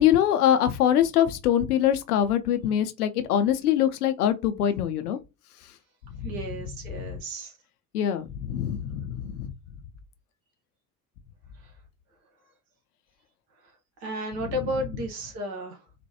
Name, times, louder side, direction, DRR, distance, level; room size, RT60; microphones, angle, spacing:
voice 1, 0.0-5.2 6.2-6.3 6.9-7.1 7.9-9.5, left 10 dB, 80° left, 0.6 m, -23 dB
voice 2, 6.2-7.5 14.0-15.8, right 1 dB, 65° right, 1.2 m, -33 dB
4.1 x 2.2 x 2.8 m
figure-of-eight pair, 55°, 45 cm